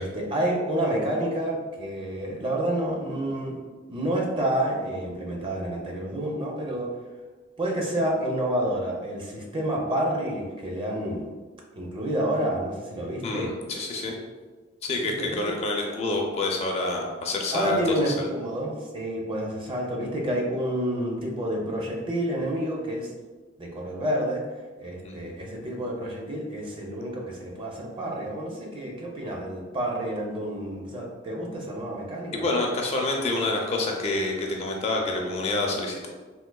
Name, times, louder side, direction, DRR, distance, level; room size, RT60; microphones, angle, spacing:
voice 1, 0.0-3.5 3.9-7.0 7.6-11.3 11.7-13.5 15.2-15.4 17.5-23.1 23.6-24.4 24.8-32.4, right 1 dB, 25° right, -1 dB, 0.5 m, -29 dB
voice 2, 13.2-14.2 14.8-18.3 25.0-25.2 32.3-36.1, left 2 dB, 35° left, 0 dB, 0.4 m, -27 dB
3.6 x 2.6 x 2.2 m, 1.3 s
head